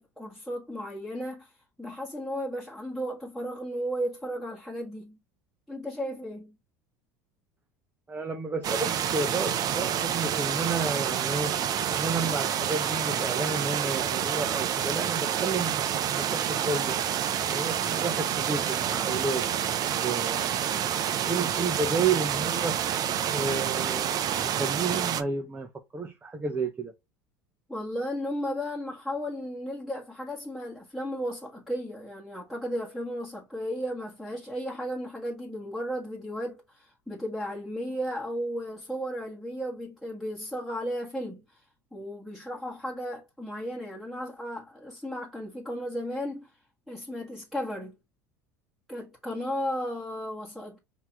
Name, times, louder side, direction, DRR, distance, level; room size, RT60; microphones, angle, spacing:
voice 1, 0.0-1.5 1.8-5.2 5.7-6.6 27.7-41.6 41.9-46.5 46.9-48.0 48.9-50.8, equal, ahead, 1.5 m, -34 dB
voice 2, 8.1-11.6 11.9-17.0 17.4-19.5 20.0-22.8 23.3-26.9, right 4 dB, 20° right, 0.9 m, -31 dB
sound 1, 8.6-25.2, right 9 dB, 45° right, 0.7 m, -28 dB
5.5 x 2.9 x 3.0 m
hypercardioid pair, 85°, 9 cm